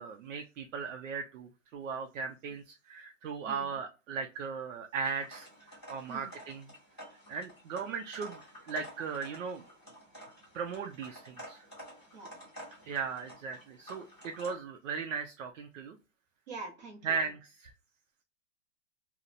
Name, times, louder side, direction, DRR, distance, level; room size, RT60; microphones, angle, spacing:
voice 1, 0.0-6.7 7.3-8.4 8.6-9.6 10.5-11.7 12.9-16.0 17.0-17.7, right 5 dB, 70° right, 4 dB, 0.5 m, -37 dB
sound 1, 5.0-14.5, equal, 5° right, 0.4 m, -51 dB
voice 2, 16.5-17.2, right 3 dB, 35° right, 1 dB, 0.7 m, -44 dB
2.8 x 2.0 x 2.4 m, 0.30 s
supercardioid pair, 180°, 40 cm